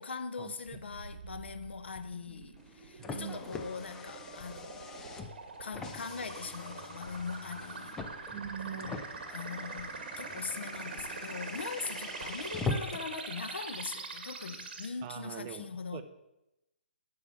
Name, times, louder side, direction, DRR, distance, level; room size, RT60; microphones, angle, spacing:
voice 1, 0.0-8.3 8.6-16.0, left 5 dB, 85° left, 1.0 m, -41 dB
sound 1, 0.7-14.9, right 4 dB, 60° right, 1.9 m, -44 dB
sound 2, 1.9-2.4 3.1-3.5 4.4-4.8 5.7-6.2 7.0-7.5 8.4-9.0 9.8-10.2 11.0-11.5 12.2-12.6, left 4 dB, 30° left, 1.1 m, -55 dB
Car, 2.6-13.2, left 3 dB, 10° left, 0.5 m, -43 dB
voice 2, 3.0-3.4 8.3-8.9 15.0-16.0, right 9 dB, 25° right, 0.8 m, -42 dB
13.0 x 4.8 x 7.1 m
hypercardioid pair, 160°, 6 cm